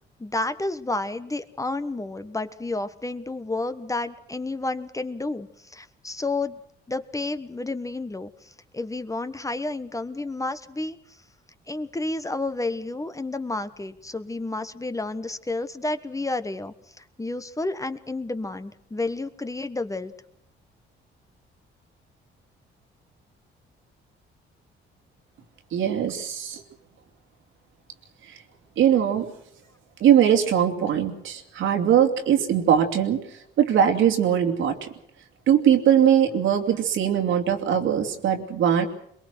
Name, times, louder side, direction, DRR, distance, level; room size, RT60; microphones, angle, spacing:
voice 1, 0.2-6.6 6.9-11.0 11.7-20.1, left 2 dB, 15° left, 11 dB, 1.2 m, -31 dB
voice 2, 25.7-26.6 28.3-28.4 28.8-29.3 30.0-33.2 33.6-34.9 35.5-38.9, right 9 dB, 80° right, 4 dB, 2.8 m, -21 dB
22.5 x 21.5 x 6.2 m, 0.74 s
cardioid pair, 90°, 20 cm